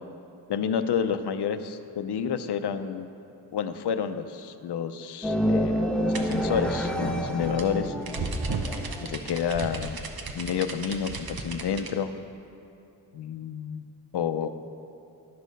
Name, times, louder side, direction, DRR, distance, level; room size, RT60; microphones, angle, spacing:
voice 1, 0.5-3.1 3.5-7.9 9.0-10.0 10.3-12.1 13.1-13.8 14.1-14.5, left 7 dB, 60° left, 10 dB, 0.5 m, -29 dB
sound 1, 5.2-9.1, equal, ahead, 0.4 m, -28 dB
sound 2, 6.1-11.9, right 3 dB, 55° right, 0.8 m, -35 dB
11.0 x 6.4 x 5.2 m, 2.8 s
wide cardioid pair, 140°, 45 cm